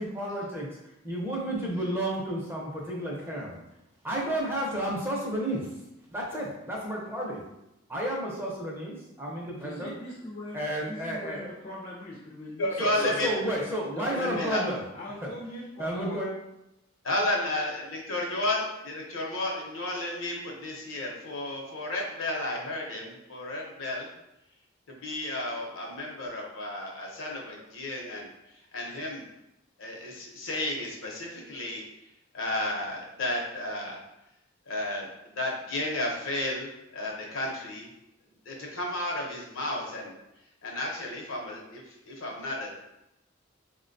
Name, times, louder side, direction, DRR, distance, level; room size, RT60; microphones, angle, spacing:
voice 1, 0.0-3.6 4.0-5.7 6.1-7.4 7.9-10.0 10.5-11.5 12.8-14.8 15.8-16.3, right 1 dB, 10° right, -4 dB, 0.5 m, -32 dB
voice 2, 9.6-13.5 14.0-14.5 14.9-16.2, left 1 dB, 40° left, -4 dB, 0.4 m, -41 dB
voice 3, 12.6-13.3 14.4-14.6 17.0-24.1 24.9-28.3 28.7-29.3 29.8-31.8 32.3-34.0 34.7-37.9 38.5-40.2 40.6-42.7, left 1 dB, 75° left, -1 dB, 0.7 m, -32 dB
3.8 x 2.2 x 2.5 m, 0.88 s
head